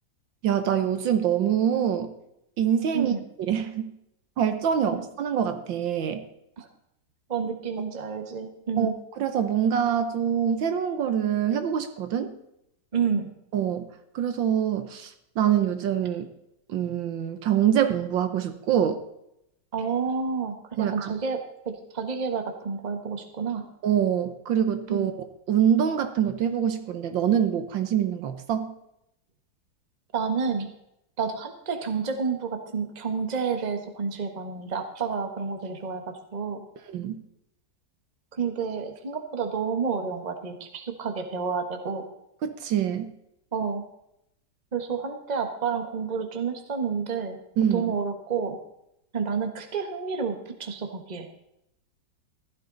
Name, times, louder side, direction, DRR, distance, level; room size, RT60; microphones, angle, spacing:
voice 1, 0.4-2.1 2.6-3.1 3.4-3.9 4.4-6.2 8.8-12.4 13.5-13.9 14.1-16.2 16.7-19.0 20.8-21.1 23.8-25.1 25.5-28.7 36.9-37.2 42.4-43.1 47.6-47.9, right 9 dB, 70° right, 9 dB, 1.6 m, -25 dB
voice 2, 7.3-8.9 12.9-13.3 19.7-23.6 24.9-25.1 30.1-30.7 31.2-36.6 38.3-42.0 43.5-43.8 44.7-47.4 47.7-48.6 49.1-51.3, right 5 dB, 25° right, 5 dB, 1.2 m, -30 dB
15.0 x 12.0 x 3.9 m, 0.82 s
omnidirectional pair, 2.2 m